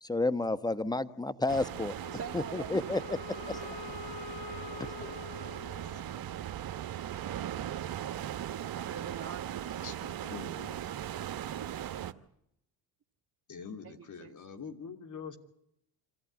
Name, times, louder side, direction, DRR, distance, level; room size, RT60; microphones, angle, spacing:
voice 1, 0.0-1.9 2.3-3.0 5.0-5.1, left 2 dB, 10° left, 14 dB, 1.0 m, -30 dB
sound 1, 1.5-12.1, right 11 dB, 50° right, 1.3 m, -39 dB
Wind instrument woodwind instrument, 2.0-6.4, left 8 dB, 85° left, 1.8 m, -46 dB
voice 2, 2.1-3.8 8.7-9.8 13.8-14.3, right 6 dB, 30° right, 2 dB, 1.6 m, -45 dB
voice 3, 9.8-10.8 13.5-15.4, left 5 dB, 40° left, 7 dB, 2.9 m, -44 dB
26.0 x 14.5 x 9.4 m, 0.78 s
supercardioid pair, 70°, 45 cm